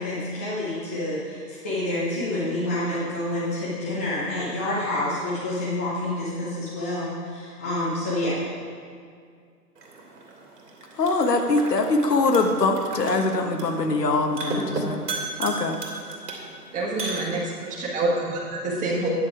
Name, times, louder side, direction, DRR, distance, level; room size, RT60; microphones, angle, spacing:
voice 1, 0.0-8.4, left 1 dB, 10° left, -8 dB, 0.4 m, -28 dB
sound 1, 9.8-17.8, right 3 dB, 80° right, 2.4 m, -35 dB
voice 2, 11.0-15.0 15.4-15.8, left 3 dB, 85° left, 5 dB, 1.2 m, -22 dB
voice 3, 16.7-19.1, right 2 dB, 15° right, -2 dB, 1.4 m, -27 dB
9.7 x 6.7 x 4.8 m, 2.2 s
hypercardioid pair, 135°, 47 cm